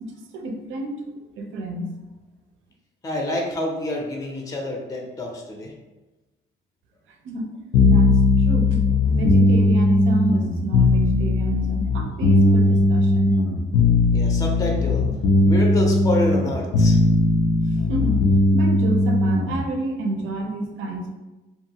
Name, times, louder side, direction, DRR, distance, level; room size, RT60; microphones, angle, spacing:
voice 1, 0.0-1.0 1.4-1.9 7.2-7.5 7.9-8.8 9.1-13.4 17.7-21.1, right 2 dB, 80° right, 3 dB, 0.5 m, -29 dB
voice 2, 3.0-5.7 14.1-15.1 15.4-17.0, left 1 dB, 15° left, 0 dB, 0.5 m, -27 dB
sound 1, 7.7-19.6, left 2 dB, 90° left, 0.4 m, -18 dB
2.6 x 2.3 x 2.8 m, 1.1 s
cardioid pair, 90°, 20 cm